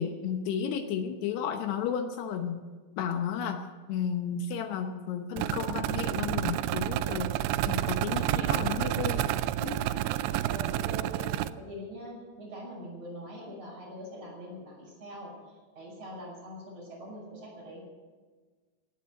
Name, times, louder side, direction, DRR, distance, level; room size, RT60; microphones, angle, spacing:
voice 1, 0.0-2.6 3.0-7.4 7.7-9.3, left 7 dB, 75° left, 6 dB, 3.0 m, -33 dB
sound 1, 5.4-11.5, right 13 dB, 85° right, 2.8 m, -29 dB
voice 2, 9.6-17.8, equal, 35° right, -3 dB, 6.6 m, -43 dB
17.5 x 10.0 x 7.8 m, 1.4 s
omnidirectional pair, 5.0 m